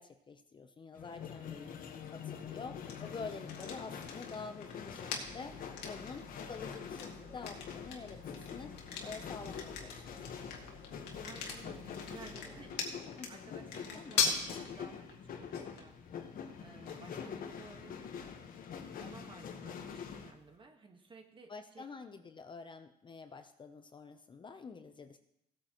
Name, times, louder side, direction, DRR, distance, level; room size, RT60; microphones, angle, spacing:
voice 1, 0.0-1.7 2.1-8.7 9.0-10.2 13.2-13.5 13.9-14.2 21.5-25.2, left 4 dB, 30° left, 8 dB, 0.6 m, -48 dB
sound 1, 0.9-20.3, left 7 dB, 55° left, 1.2 m, -46 dB
sound 2, 2.8-20.6, left 6 dB, 85° left, 1.9 m, -42 dB
sound 3, 5.2-12.7, left 3 dB, 5° left, 2.0 m, -56 dB
voice 2, 11.2-12.9 13.3-14.4 14.7-16.3 16.6-18.3 19.0-21.8, right 4 dB, 30° right, 5 dB, 1.4 m, -55 dB
16.5 x 8.8 x 3.0 m, 0.80 s
cardioid pair, 110°, 17 cm